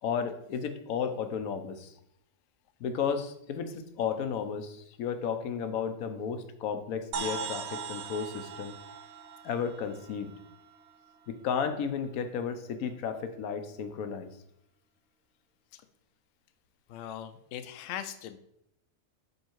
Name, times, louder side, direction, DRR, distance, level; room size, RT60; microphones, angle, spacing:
voice 1, 0.0-1.9 2.8-8.7 9.4-10.3 11.3-14.3, left 7 dB, 90° left, 8 dB, 1.2 m, -33 dB
sound 1, 7.1-10.9, right 5 dB, 65° right, 0.8 m, -39 dB
voice 2, 16.9-18.4, left 10 dB, 70° left, 10 dB, 0.8 m, -40 dB
5.4 x 4.8 x 4.5 m, 0.75 s
omnidirectional pair, 1.4 m